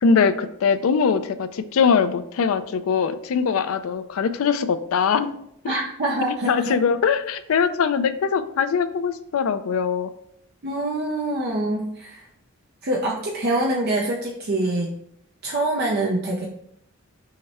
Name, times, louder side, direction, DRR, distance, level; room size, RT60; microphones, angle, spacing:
voice 1, 0.0-5.3 5.6-5.8 6.4-10.1, left 6 dB, 75° left, 12 dB, 0.4 m, -22 dB
voice 2, 5.7-6.7 10.6-12.3 12.8-14.9 15.4-16.5, right 2 dB, 45° right, -2 dB, 0.5 m, -25 dB
5.6 x 2.1 x 4.2 m, 0.72 s
head